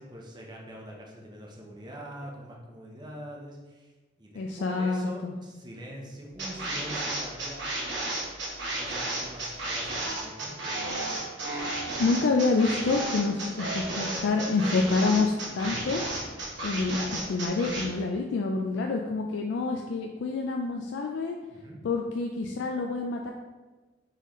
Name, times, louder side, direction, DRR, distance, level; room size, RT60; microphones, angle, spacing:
voice 1, 0.0-3.9 4.2-4.4 4.7-8.0 8.7-10.6 21.5-21.8, equal, 25° right, -1 dB, 0.7 m, -43 dB
voice 2, 4.3-5.3 12.0-16.0 16.6-21.4 21.8-23.3, left 3 dB, 75° left, 1 dB, 0.3 m, -27 dB
sound 1, 6.4-17.9, right 2 dB, 75° right, 1.1 m, -33 dB
4.0 x 4.0 x 3.0 m, 1.2 s
head